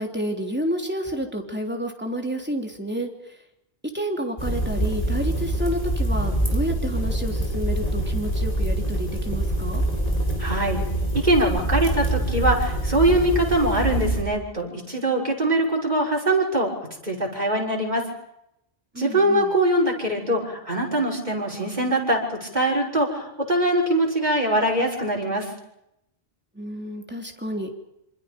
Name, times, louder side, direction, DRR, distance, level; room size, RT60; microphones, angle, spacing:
voice 1, 0.0-3.1 3.9-9.8 18.9-19.5 26.5-27.7, equal, 10° right, 2 dB, 3.4 m, -30 dB
sound 1, 4.4-14.2, right 1 dB, 35° left, 5.1 m, -25 dB
voice 2, 10.4-10.8 11.2-16.7 17.0-18.0 19.0-25.5, right 1 dB, 45° right, 0 dB, 6.3 m, -22 dB
27.0 x 26.5 x 5.3 m, 0.81 s
omnidirectional pair, 1.1 m